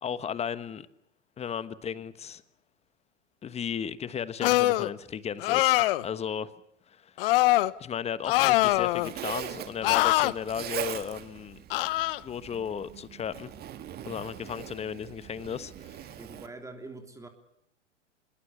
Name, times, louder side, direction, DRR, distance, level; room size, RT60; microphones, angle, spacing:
voice 1, 0.0-0.9 1.4-2.4 3.4-5.8 6.0-6.5 6.9-7.1 7.8-11.6 12.2-13.5 14.0-16.1, left 8 dB, 15° left, 15 dB, 1.3 m, -35 dB
sound 1, 4.4-4.9 5.4-6.1 7.2-7.7 8.3-9.1 9.8-10.3 11.7-12.2, left 17 dB, 50° left, 1.0 m, -23 dB
Zipper (clothing), 8.3-16.5, right 10 dB, 25° right, 2.0 m, -41 dB
voice 2, 16.2-17.3, right 3 dB, 10° right, 5 dB, 3.2 m, -44 dB
25.0 x 22.0 x 7.3 m, 0.72 s
hypercardioid pair, 115°, 37 cm